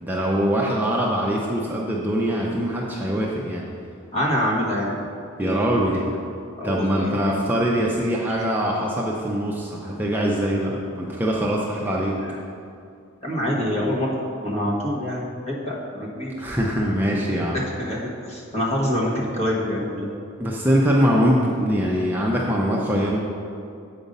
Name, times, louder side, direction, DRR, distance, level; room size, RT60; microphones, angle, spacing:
voice 1, 0.0-3.6 5.4-6.0 6.6-12.2 16.4-17.6 20.4-23.2, equal, 10° right, -3 dB, 0.6 m, -23 dB
voice 2, 4.1-5.0 5.4-6.1 6.6-7.4 12.2-12.3 13.2-16.3 17.8-20.1, equal, 30° left, -3 dB, 1.4 m, -26 dB
8.0 x 5.2 x 5.3 m, 2.4 s
head